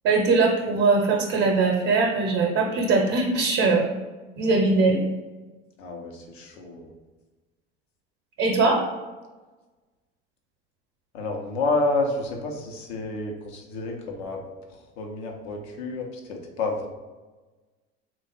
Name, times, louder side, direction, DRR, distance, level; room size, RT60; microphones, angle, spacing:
voice 1, 0.0-3.9 4.4-5.0 8.4-8.8, right 3 dB, 55° right, 0 dB, 0.8 m, -21 dB
voice 2, 5.8-6.9 11.1-14.4 15.0-16.9, left 3 dB, 75° left, 1 dB, 0.9 m, -29 dB
3.4 x 2.5 x 4.0 m, 1.2 s
hypercardioid pair, 75°, 32 cm